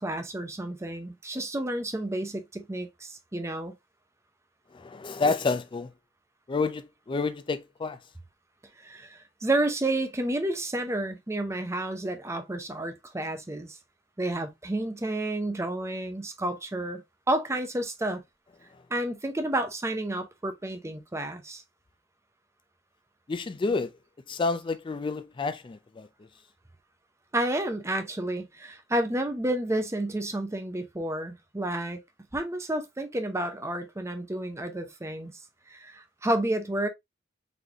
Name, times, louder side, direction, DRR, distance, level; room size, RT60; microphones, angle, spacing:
voice 1, 0.0-3.7 8.8-13.8 14.2-17.0 17.3-18.2 18.9-21.6 27.3-32.0 32.3-35.4 35.7-36.9, right 1 dB, 15° right, 0.6 m, -30 dB
voice 2, 4.7-5.9 6.5-8.0 23.3-23.9 24.3-26.1, left 4 dB, 25° left, 0.4 m, -29 dB
4.1 x 3.2 x 2.7 m
head